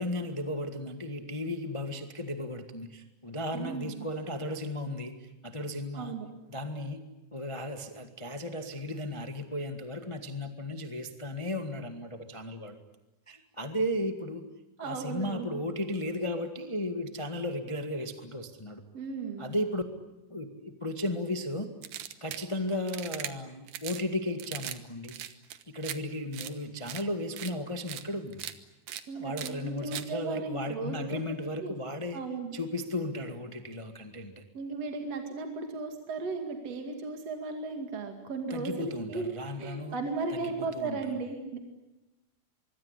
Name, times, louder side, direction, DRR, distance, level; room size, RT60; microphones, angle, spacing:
voice 1, 0.0-6.1 6.5-7.0 7.3-12.7 13.3-14.5 14.8-18.8 19.4-19.8 20.3-21.7 22.2-25.1 25.7-28.4 29.1-32.2 32.5-34.4 38.5-39.9 40.3-41.0, left 1 dB, 40° left, 6 dB, 0.4 m, -35 dB
voice 2, 3.5-4.1 5.9-6.3 14.8-15.6 18.9-19.5 29.1-31.2 31.6-31.7 32.1-32.6 34.5-39.3 39.6-41.6, right 4 dB, 50° right, 4 dB, 3.2 m, -36 dB
sound 1, 21.8-22.5 22.9-23.3 23.7-24.0 24.4-24.8 25.0-26.0 26.3-26.5 26.9-27.0 27.4-27.5 27.9-28.0 28.3-28.5 28.9-29.0 29.4-29.5 29.9-30.1, right 11 dB, 70° right, 2.7 m, -39 dB
25.0 x 23.0 x 9.8 m, 1.0 s
omnidirectional pair, 4.1 m